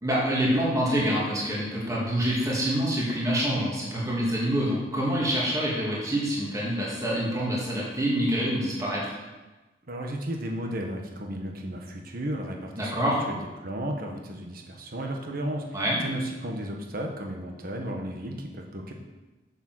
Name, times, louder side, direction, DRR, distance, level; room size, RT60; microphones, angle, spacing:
voice 1, 0.0-9.1 12.8-13.2 15.7-16.0, equal, 20° right, -5 dB, 2.2 m, -26 dB
voice 2, 9.9-18.9, right 1 dB, 50° right, 2 dB, 1.3 m, -34 dB
7.2 x 6.8 x 6.2 m, 1.2 s
head